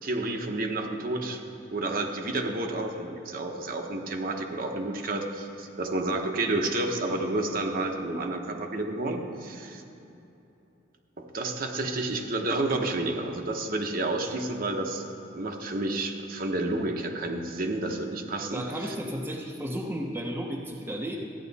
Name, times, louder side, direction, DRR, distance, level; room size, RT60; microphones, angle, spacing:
voice 1, 0.0-1.4 1.7-9.8 11.2-15.0 15.3-18.9, right 2 dB, 45° right, 3 dB, 1.0 m, -30 dB
voice 2, 18.5-21.2, equal, 10° right, -1 dB, 0.8 m, -33 dB
14.0 x 9.7 x 4.1 m, 2.8 s
head